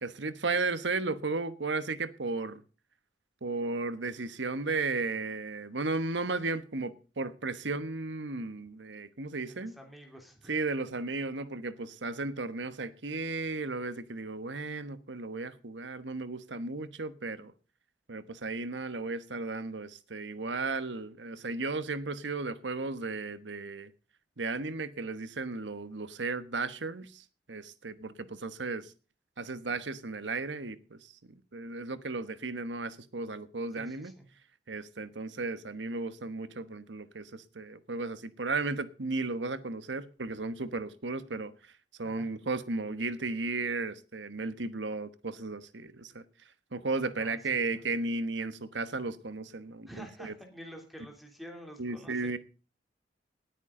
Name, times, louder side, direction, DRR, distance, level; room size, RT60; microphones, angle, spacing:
voice 1, 0.0-2.6 3.4-9.7 10.5-17.5 18.1-23.9 24.4-28.9 29.4-31.1 31.5-34.1 34.7-41.5 42.0-46.2 46.7-50.3 51.8-52.4, right 3 dB, 85° right, 1.2 m, -35 dB
voice 2, 9.5-10.5 33.7-34.2 42.0-42.3 47.1-47.7 49.9-52.1, equal, ahead, 3.0 m, -49 dB
19.0 x 9.2 x 3.8 m
head